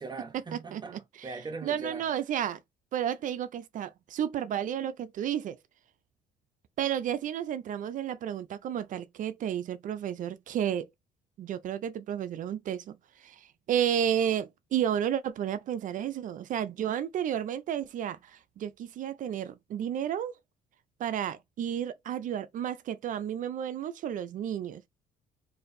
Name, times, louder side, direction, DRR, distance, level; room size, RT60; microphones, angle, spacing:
voice 1, 0.0-2.1, right 3 dB, 25° right, 0.9 m, -40 dB
voice 2, 0.5-0.8 1.2-1.3 1.6-2.6 2.9-5.6 6.8-10.9 11.4-20.4 21.0-24.9, right 9 dB, 50° right, 0.4 m, -32 dB
4.2 x 2.6 x 2.6 m
cardioid pair, 110°, 17 cm